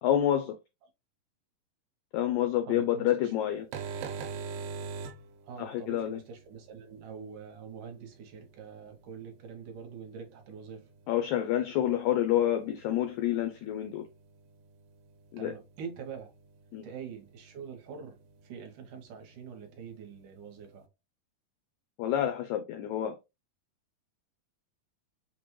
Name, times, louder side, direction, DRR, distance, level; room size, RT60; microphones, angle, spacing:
voice 1, 0.0-0.6 2.1-3.7 5.6-6.2 11.1-14.0 15.3-15.5 16.7-16.9 22.0-23.1, left 11 dB, 85° left, 1.7 m, -28 dB
voice 2, 2.7-3.3 5.4-10.9 15.4-16.3 16.8-18.2 18.4-20.9, right 6 dB, 70° right, 2.4 m, -44 dB
sound 1, 3.5-20.9, right 5 dB, 90° right, 2.4 m, -47 dB
5.9 x 2.2 x 3.0 m
omnidirectional pair, 3.9 m